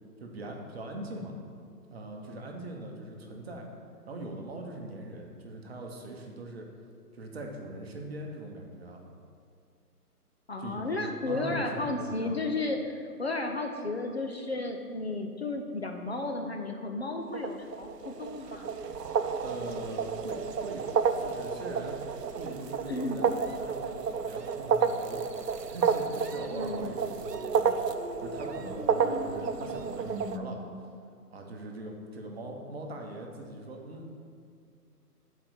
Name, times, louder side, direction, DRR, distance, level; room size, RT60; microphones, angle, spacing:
voice 1, 0.2-1.4 1.9-3.7 4.1-6.7 7.1-9.0 10.6-12.4 19.4-22.0 22.3-30.7 31.3-34.2, right 1 dB, 40° right, 1 dB, 0.9 m, -41 dB
voice 2, 10.5-18.7 22.9-23.3 26.5-27.0, left 2 dB, 45° left, 3 dB, 0.5 m, -33 dB
sound 1, 17.3-30.4, right 6 dB, 85° right, 0.6 m, -31 dB
sound 2, 18.6-22.3 23.4-30.4, right 1 dB, 5° left, 1.2 m, -45 dB
5.9 x 4.6 x 6.4 m, 2.2 s
figure-of-eight pair, 145°, 47 cm